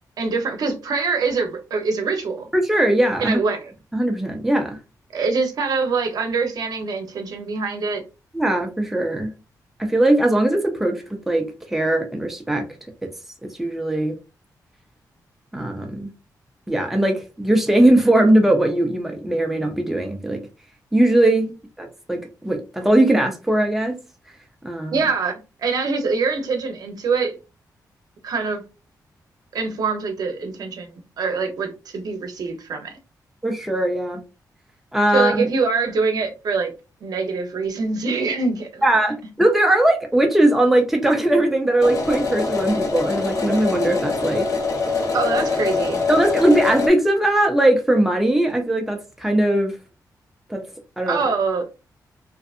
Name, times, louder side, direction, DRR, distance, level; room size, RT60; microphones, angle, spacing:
voice 1, 0.2-2.5 3.2-3.7 5.1-8.0 24.9-27.4 28.2-28.6 29.5-32.9 35.1-36.7 37.0-38.8 45.1-46.0 51.1-51.7, right 4 dB, 65° right, 0.7 m, -24 dB
voice 2, 2.5-3.4 3.9-4.8 8.3-9.3 9.8-12.7 13.4-14.2 15.5-16.1 16.7-20.4 20.9-21.5 21.8-23.9 24.6-25.1 33.4-34.2 34.9-35.5 38.8-44.5 46.1-49.7 50.5-50.6 51.0-51.2, right 1 dB, 5° right, 0.5 m, -19 dB
sound 1, 41.8-46.9, left 4 dB, 50° left, 0.7 m, -24 dB
2.6 x 2.4 x 2.4 m
wide cardioid pair, 120°, 7 cm